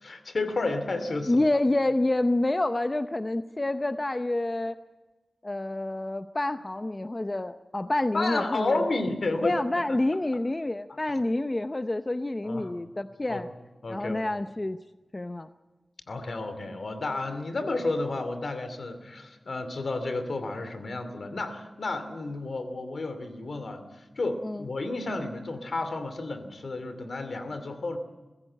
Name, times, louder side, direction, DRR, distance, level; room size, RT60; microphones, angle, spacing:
voice 1, 0.0-1.5 8.1-9.5 9.9-10.0 12.4-12.7 13.3-13.4 13.8-14.3 16.1-28.0, left 2 dB, 75° left, 9 dB, 2.6 m, -31 dB
voice 2, 1.3-4.8 5.4-8.9 9.4-13.5 13.9-14.8 15.1-15.5 24.4-24.7, left 2 dB, 30° left, 9 dB, 0.7 m, -28 dB
22.0 x 15.5 x 8.7 m, 1.2 s
wide cardioid pair, 60°, 0 cm